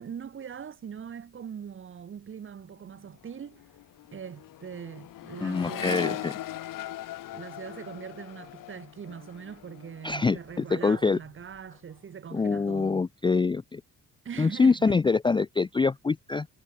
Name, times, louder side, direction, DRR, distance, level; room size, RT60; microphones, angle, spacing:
voice 1, 0.0-3.6 4.1-6.3 7.3-13.1 14.2-15.0, right 7 dB, 40° right, 1.3 m, -41 dB
Accelerating revving vroom, 2.7-3.0 3.2-10.7 11.1-11.7, left 14 dB, 80° left, 0.9 m, -40 dB
voice 2, 5.4-6.3 10.0-10.4 10.7-11.2 12.3-13.8 14.4-16.5, left 4 dB, 15° left, 0.4 m, -25 dB
cardioid pair, 140°, 32 cm